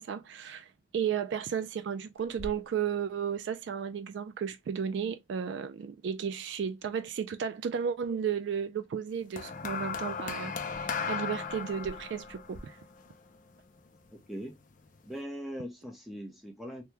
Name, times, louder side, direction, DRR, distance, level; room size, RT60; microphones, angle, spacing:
voice 1, 0.0-12.8, right 7 dB, 60° right, 0.3 m, -34 dB
Clock, 2.2-12.6, equal, 75° left, 0.8 m, -55 dB
sound 1, 9.4-13.8 14.7-15.0, left 6 dB, 40° left, 0.5 m, -36 dB
voice 2, 14.1-14.6 15.0-16.8, equal, ahead, 0.6 m, -40 dB
2.8 x 2.1 x 3.3 m
head